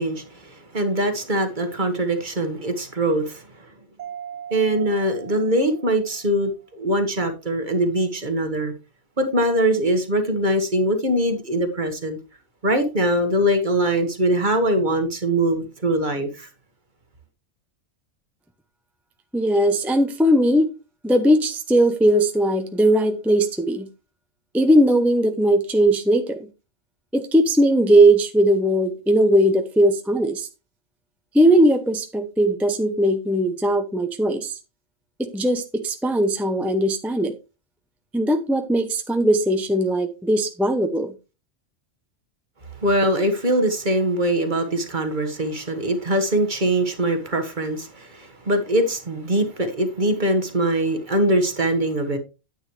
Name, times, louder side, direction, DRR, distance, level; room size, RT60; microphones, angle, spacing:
voice 1, 0.0-3.7 4.5-8.7 9.2-12.2 12.6-16.5 42.8-52.2, right 1 dB, 40° right, 1.6 m, -22 dB
Mallet percussion, 4.0-6.5, right 8 dB, 85° right, 1.2 m, -39 dB
voice 2, 19.3-20.7 21.0-23.9 24.5-26.4 27.1-30.5 31.3-34.6 35.2-37.3 38.1-41.1, right 1 dB, ahead, 0.7 m, -19 dB
9.6 x 8.9 x 3.2 m
omnidirectional pair, 1.2 m